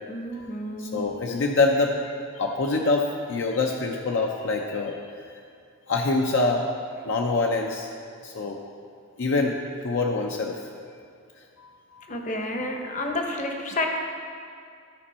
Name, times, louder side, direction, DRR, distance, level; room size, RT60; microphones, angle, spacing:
voice 1, 0.1-1.0 12.1-13.9, left 1 dB, 35° left, 3 dB, 0.8 m, -30 dB
voice 2, 0.8-5.2 5.9-6.7 7.0-7.9 8.2-8.6 9.2-10.6 11.6-12.0, left 3 dB, 60° left, 1 dB, 0.5 m, -25 dB
13.0 x 5.2 x 4.2 m, 2.3 s
head